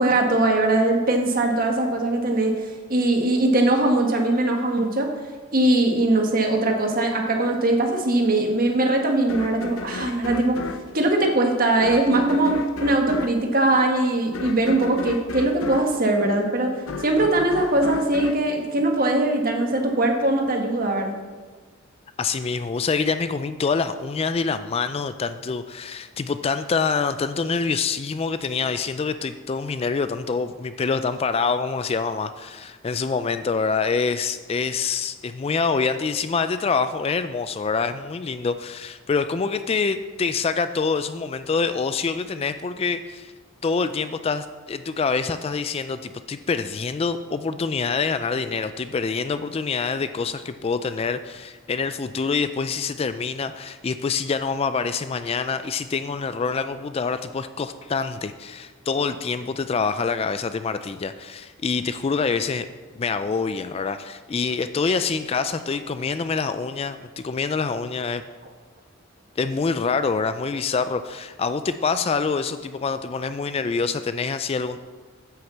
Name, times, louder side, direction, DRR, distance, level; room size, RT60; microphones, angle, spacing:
voice 1, 0.0-5.1 5.5-10.6 10.9-21.1, right 2 dB, 45° right, 3 dB, 1.5 m, -21 dB
sound 1, 9.3-19.5, left 3 dB, 75° left, 0.7 m, -35 dB
voice 2, 22.2-43.3 43.6-62.7 63.0-68.2 69.4-74.8, left 5 dB, 30° left, 11 dB, 0.3 m, -26 dB
9.5 x 6.4 x 7.2 m, 1.4 s
head